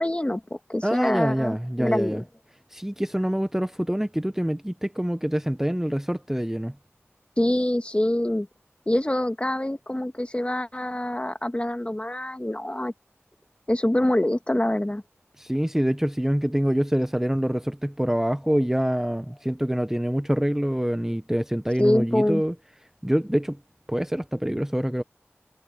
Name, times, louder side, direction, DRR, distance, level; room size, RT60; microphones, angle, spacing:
voice 1, 0.0-2.2 7.4-8.5 8.9-12.9 13.7-15.0 21.8-22.4, left 1 dB, 25° left, 1.5 m, -25 dB
voice 2, 0.8-2.2 2.7-6.7 15.4-22.5 23.0-23.6 23.9-25.0, equal, 10° right, 0.8 m, -25 dB
wide cardioid pair, 50°, 5 cm